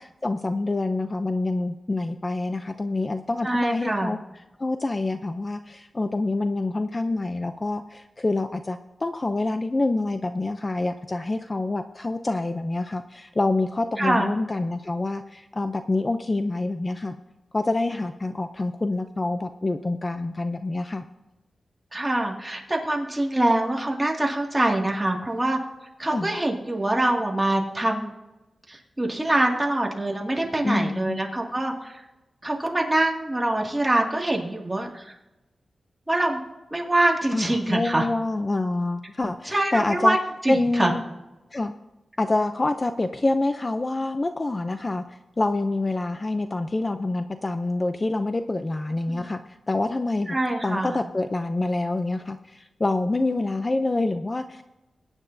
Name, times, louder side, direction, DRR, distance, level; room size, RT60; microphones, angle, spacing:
voice 1, 0.0-4.2 4.6-17.2 17.5-21.1 26.1-26.4 30.6-31.2 37.3-40.2 40.5-41.0 41.5-41.7 42.2-49.4 49.7-50.4 50.6-54.6, left 2 dB, 30° left, 8 dB, 0.5 m, -26 dB
voice 2, 3.4-4.1 14.0-14.3 21.9-25.6 26.0-28.1 28.7-32.0 32.4-35.1 36.1-36.4 36.7-38.1 39.5-40.2 40.4-40.9 49.1-49.2 50.3-51.0, right 1 dB, 15° right, -1 dB, 2.1 m, -24 dB
22.0 x 9.7 x 2.7 m, 1.0 s
wide cardioid pair, 100°, 0 cm